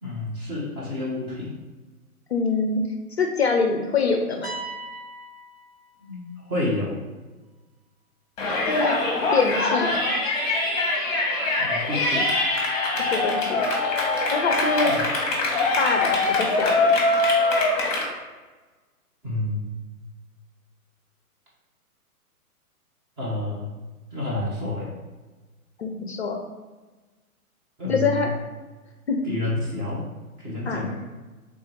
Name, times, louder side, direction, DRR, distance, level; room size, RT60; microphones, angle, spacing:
voice 1, 0.0-1.5 6.0-7.0 11.6-12.3 14.8-15.0 19.2-19.7 23.2-23.7 24.1-24.9 27.8-28.3 29.2-30.0 30.4-30.9, left 2 dB, 15° right, -7 dB, 0.6 m, -29 dB
voice 2, 2.3-2.8 3.2-4.6 8.7-9.0 9.3-10.1 13.0-13.6 14.3-14.9 15.8-17.0 25.8-26.4 27.9-28.3 29.1-29.2 30.6-30.9, left 4 dB, 50° left, 3 dB, 0.5 m, -24 dB
sound 1, 4.4-6.3, right 2 dB, 90° right, 1.1 m, -38 dB
Yell, 8.4-18.1, left 2 dB, 25° left, 1.0 m, -23 dB
3.5 x 2.8 x 4.1 m, 1.3 s
figure-of-eight pair, 120°, 44 cm